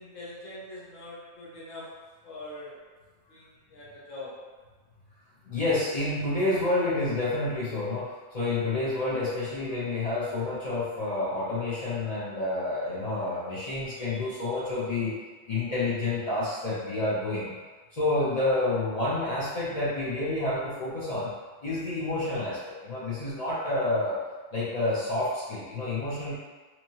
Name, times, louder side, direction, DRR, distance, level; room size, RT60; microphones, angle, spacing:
voice 1, 0.0-2.0 2.2-2.8 3.3-4.4, left 1 dB, 90° left, -7 dB, 1.2 m, -43 dB
voice 2, 5.5-15.2 15.5-17.5 17.9-21.3 21.6-24.2 24.5-26.4, left 2 dB, 45° left, -8 dB, 0.5 m, -29 dB
2.9 x 2.3 x 2.7 m, 1.3 s
omnidirectional pair, 1.3 m